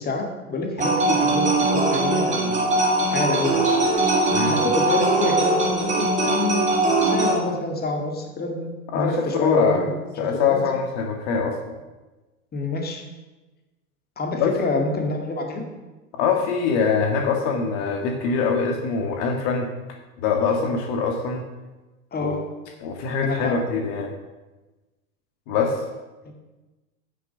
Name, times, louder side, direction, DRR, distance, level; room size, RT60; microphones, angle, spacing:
voice 1, 0.0-2.6 3.1-3.6 4.5-9.9 10.3-10.6 12.5-13.0 14.2-15.6 22.1-22.4 23.2-23.6 26.3-26.4, left 2 dB, 20° left, 2 dB, 2.2 m, -27 dB
sound 1, 0.8-7.4, right 2 dB, 15° right, 3.2 m, -21 dB
voice 2, 8.9-9.9 10.2-11.7 14.4-14.5 16.1-19.7 20.2-21.4 22.2-22.4 22.8-24.1 25.5-25.8, left 5 dB, 55° left, 3 dB, 1.8 m, -23 dB
9.8 x 6.6 x 7.1 m, 1.1 s
hypercardioid pair, 105°, 43 cm